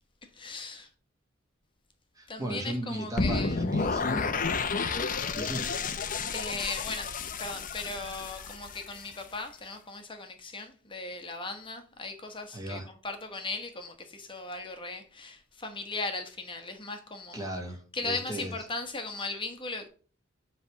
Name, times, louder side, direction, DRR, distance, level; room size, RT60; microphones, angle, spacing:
voice 1, 0.2-0.9 2.3-3.7 6.3-17.5 17.9-19.9, left 3 dB, 25° left, 1.1 m, -38 dB
voice 2, 2.2-4.4 5.3-5.7 12.5-12.9 17.3-18.5, right 1 dB, 15° right, 1.5 m, -36 dB
sound 1, 3.2-9.2, left 4 dB, 40° left, 0.7 m, -31 dB
7.9 x 3.4 x 6.2 m
head